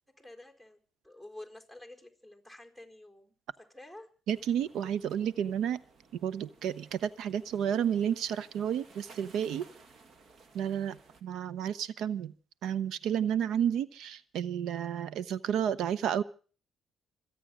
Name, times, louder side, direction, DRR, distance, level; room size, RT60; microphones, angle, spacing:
voice 1, 0.2-4.1, left 1 dB, 15° right, 3 dB, 4.2 m, -50 dB
sound 1, 4.3-11.2, right 4 dB, 60° right, 2.1 m, -58 dB
voice 2, 4.3-5.8 6.2-9.7 10.5-12.3 12.6-16.2, right 9 dB, 80° right, 17 dB, 0.8 m, -31 dB
25.5 x 8.6 x 6.2 m, 0.40 s
cardioid pair, 90°, 0 cm